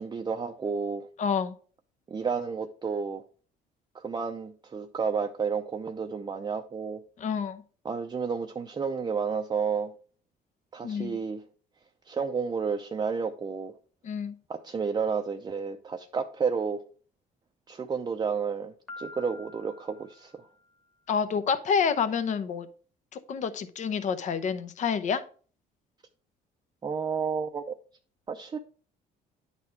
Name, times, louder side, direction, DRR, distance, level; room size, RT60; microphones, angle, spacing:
voice 1, 0.0-1.1 2.1-3.2 3.9-7.0 7.8-9.9 10.7-11.4 12.1-13.7 14.5-16.8 17.7-20.3 26.8-27.7 28.3-28.6, right 5 dB, 25° right, 0.6 m, -31 dB
voice 2, 1.2-1.5 7.2-7.6 10.8-11.2 14.0-14.4 21.1-22.7 23.3-25.2, left 6 dB, 45° left, 0.7 m, -28 dB
Piano, 18.9-20.8, left 2 dB, ahead, 1.2 m, -47 dB
9.6 x 4.1 x 4.5 m
cardioid pair, 110°, 17 cm